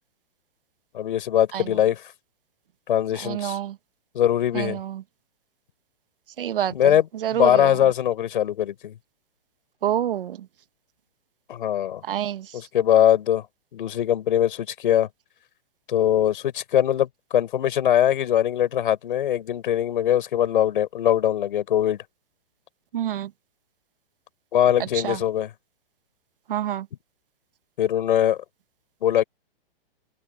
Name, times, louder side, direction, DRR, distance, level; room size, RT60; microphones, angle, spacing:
voice 1, 0.9-2.0 2.9-3.6 4.1-4.8 6.7-9.0 11.5-12.0 12.5-13.5 13.7-15.1 15.9-22.0 24.5-25.5 27.8-28.4 29.0-29.2, left 10 dB, 60° left, 5.2 m, -22 dB
voice 2, 3.2-3.7 4.5-5.0 6.4-6.7 7.2-7.7 9.8-10.4 12.1-12.5 22.9-23.3 25.0-25.2 26.5-26.9, right 11 dB, 65° right, 1.3 m, -27 dB
hypercardioid pair, 165°, 29 cm